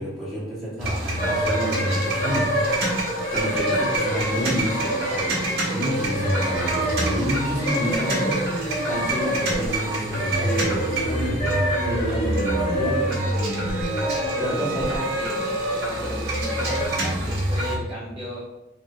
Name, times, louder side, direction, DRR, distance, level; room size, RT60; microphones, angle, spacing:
voice 1, 0.0-2.8 3.3-5.4 5.7-8.5 8.9-13.2 14.4-14.9, equal, ahead, -10 dB, 1.1 m, -29 dB
sound 1, 0.8-17.8, right 1 dB, 55° right, 1.3 m, -27 dB
sound 2, 1.2-16.9, equal, 35° left, 0.8 m, -28 dB
Wind instrument woodwind instrument, 12.9-17.0, right 7 dB, 85° right, 0.5 m, -38 dB
voice 2, 14.4-15.6 15.9-18.4, equal, 25° right, -8 dB, 0.6 m, -34 dB
3.3 x 2.8 x 2.4 m, 0.94 s
head